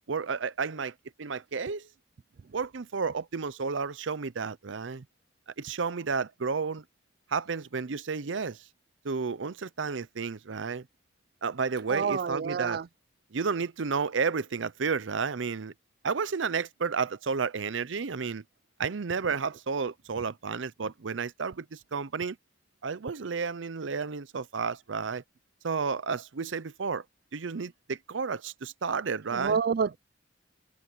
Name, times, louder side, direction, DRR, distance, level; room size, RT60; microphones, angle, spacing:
voice 1, 0.1-1.9 2.5-5.0 5.6-6.8 7.3-8.6 9.0-10.9 11.4-12.8 13.3-15.7 16.0-18.4 18.8-22.4 22.8-25.2 25.6-27.0 27.3-29.6, right 5 dB, 85° right, 0.7 m, -32 dB
voice 2, 11.9-12.9 29.3-30.0, right 6 dB, 55° right, 0.4 m, -28 dB
head